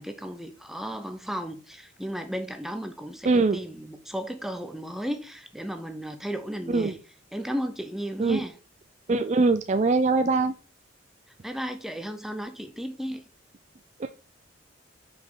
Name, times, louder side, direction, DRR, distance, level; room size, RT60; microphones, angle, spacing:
voice 1, 0.0-7.0 7.3-8.5 11.4-13.2, equal, ahead, 0.6 m, -34 dB
voice 2, 3.2-3.6 6.7-6.9 8.2-8.4 9.1-10.5 14.0-14.1, right 3 dB, 35° right, 0.3 m, -22 dB
5.9 x 5.0 x 5.5 m
head